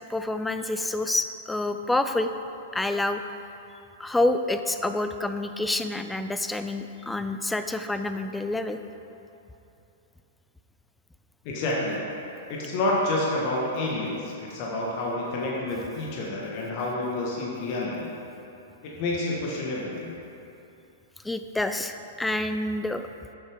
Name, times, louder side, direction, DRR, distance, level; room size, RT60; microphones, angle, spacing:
voice 1, 0.1-2.3 2.7-3.3 4.0-8.8 21.2-23.1, left 2 dB, 5° left, 8 dB, 0.5 m, -28 dB
voice 2, 11.4-12.0 12.5-18.1 19.0-20.1, left 2 dB, 45° left, -4 dB, 1.7 m, -29 dB
11.5 x 7.2 x 3.8 m, 2.8 s
figure-of-eight pair, 105°, 0 cm